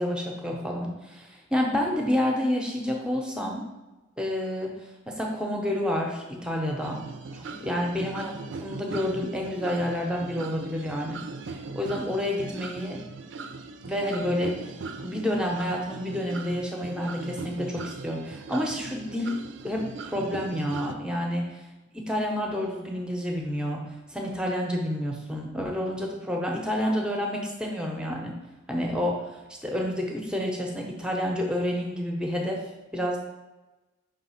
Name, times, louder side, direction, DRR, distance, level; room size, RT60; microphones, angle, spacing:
voice 1, 0.0-3.6 4.2-4.7 5.1-7.0 7.3-8.3 8.6-11.2 11.5-13.0 13.8-14.7 15.0-19.3 19.6-21.4 21.9-23.8 24.1-28.3 28.7-29.3 29.6-32.6 32.9-33.2, left 1 dB, 5° right, 0 dB, 0.7 m, -29 dB
sound 1, 6.8-20.9, right 4 dB, 65° right, 0.4 m, -39 dB
5.3 x 3.3 x 5.6 m, 1.1 s
head